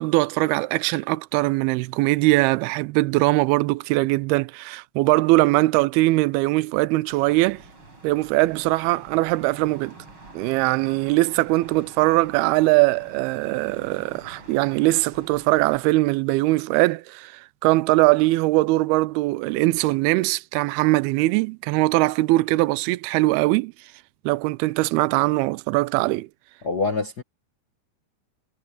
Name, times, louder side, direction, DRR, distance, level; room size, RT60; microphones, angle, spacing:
voice 1, 0.0-7.6 8.0-10.0 10.3-23.7 24.3-26.3, right 20 dB, 85° right, 2.5 m, -21 dB
sound 1, 7.1-15.8, right 2 dB, 30° right, 6.8 m, -47 dB
voice 2, 26.6-27.2, left 4 dB, 75° left, 0.9 m, -25 dB
omnidirectional pair, 4.6 m